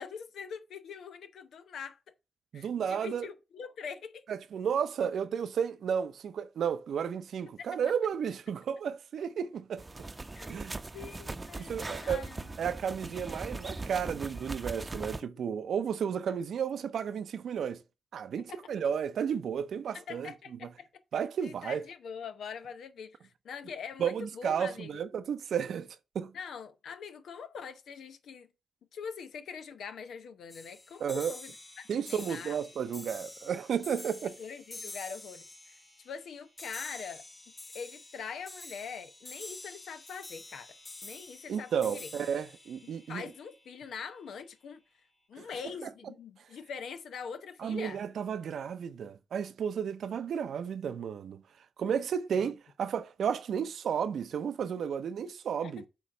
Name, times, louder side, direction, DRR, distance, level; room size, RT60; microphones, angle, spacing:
voice 1, 0.0-2.0 2.5-4.2 7.6-7.7 10.3-10.5 10.9-12.5 18.5-18.6 19.9-20.9 21.4-25.0 26.3-28.5 28.9-32.6 34.4-37.2 37.7-40.7 41.0-42.1 42.8-44.8 45.3-48.0 55.6-55.9, left 6 dB, 80° left, 0.8 m, -43 dB
voice 2, 2.5-3.3 4.3-9.9 10.5-10.8 11.6-12.3 12.6-17.8 18.1-20.6 21.1-21.8 24.0-26.4 31.0-31.3 31.9-34.4 41.5-43.2 45.4-45.5 45.8-45.9 47.6-51.4 51.8-55.9, right 7 dB, 80° right, 0.6 m, -33 dB
sound 1, 9.8-15.2, right 2 dB, 30° right, 0.7 m, -40 dB
sound 2, 30.5-44.0, left 2 dB, 40° left, 2.9 m, -48 dB
8.4 x 3.1 x 6.4 m
supercardioid pair, 50°, 0 cm